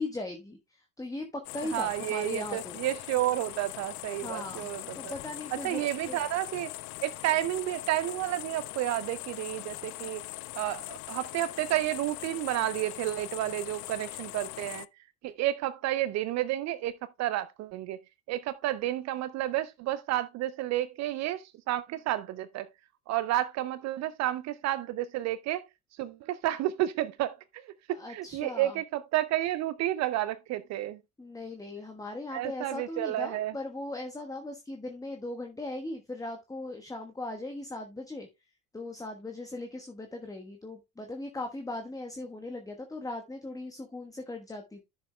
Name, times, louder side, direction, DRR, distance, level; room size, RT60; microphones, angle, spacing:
voice 1, 0.0-2.8 4.2-5.8 6.1-6.2 27.9-28.8 31.2-38.3 38.7-44.8, left 2 dB, 10° left, 1.2 m, -38 dB
sound 1, 1.4-14.9, left 20 dB, 40° left, 0.4 m, -41 dB
voice 2, 1.7-5.1 5.5-6.7 7.0-10.2 10.6-14.9 15.2-18.0 18.3-22.7 23.1-25.6 25.9-27.7 28.1-31.0 32.3-33.5, right 14 dB, 40° right, 0.5 m, -31 dB
13.0 x 6.8 x 2.2 m
figure-of-eight pair, 65°, 44 cm